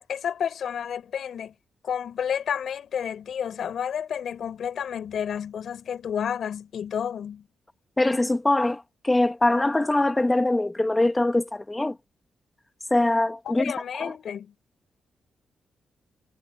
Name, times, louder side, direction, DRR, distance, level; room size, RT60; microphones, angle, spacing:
voice 1, 0.0-1.5 1.8-7.5 13.5-14.5, left 8 dB, 60° left, 5.0 m, -30 dB
voice 2, 8.0-12.0 12.9-13.6 14.0-14.1, left 2 dB, 10° left, 1.4 m, -23 dB
wide cardioid pair, 165°, 0 cm